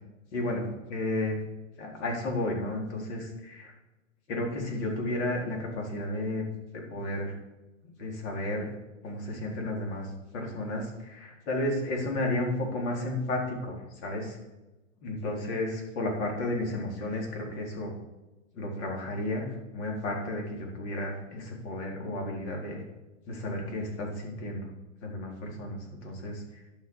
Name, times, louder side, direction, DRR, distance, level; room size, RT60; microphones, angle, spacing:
voice 1, 0.3-1.4 1.8-3.7 4.3-6.4 6.7-7.4 7.8-8.7 9.0-10.1 10.3-13.8 14.0-14.4 15.0-17.9 18.5-22.8 23.3-24.7 25.0-26.6, left 1 dB, 60° left, 0 dB, 4.2 m, -32 dB
11.5 x 6.2 x 7.1 m, 1.1 s
hypercardioid pair, 125°, 38 cm